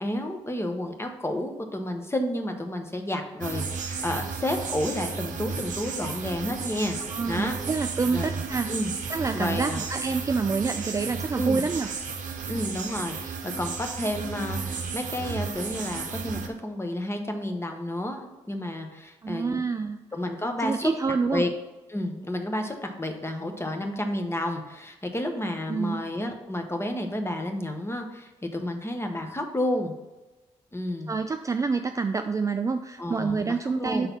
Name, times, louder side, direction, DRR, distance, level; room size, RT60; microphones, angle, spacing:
voice 1, 0.0-7.0 7.3-7.6 8.1-8.4 8.7-8.9 9.3-9.8 11.4-11.6 12.5-19.6 20.1-20.9 21.3-21.5 21.9-29.9 30.7-31.1 33.0-34.1, left 1 dB, 15° left, 5 dB, 1.1 m, -31 dB
sound 1, 3.4-16.5, right 5 dB, 60° right, 0.8 m, -33 dB
voice 2, 7.1-8.7 9.1-11.9 19.2-20.0 20.6-21.4 25.7-26.0 31.1-34.1, right 4 dB, 20° right, 7 dB, 0.3 m, -27 dB
5.8 x 4.0 x 5.3 m, 1.1 s
hypercardioid pair, 40°, 15 cm